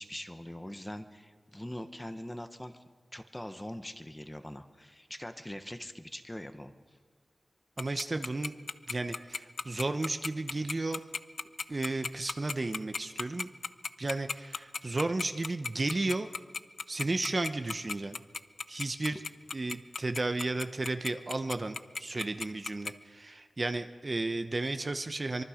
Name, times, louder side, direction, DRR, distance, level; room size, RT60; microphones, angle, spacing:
voice 1, 0.0-2.8 3.1-6.7 19.1-19.2, left 1 dB, 10° left, 8 dB, 1.1 m, -42 dB
Tick-tock, 7.8-22.9, left 4 dB, 65° left, 0.6 m, -35 dB
voice 2, 7.8-8.5 8.9-11.0 11.7-13.5 14.0-16.3 16.9-18.2 18.7-19.2 19.5-25.4, right 2 dB, 35° right, 8 dB, 0.9 m, -33 dB
24.5 x 23.0 x 5.1 m, 1.5 s
wide cardioid pair, 115°, 0 cm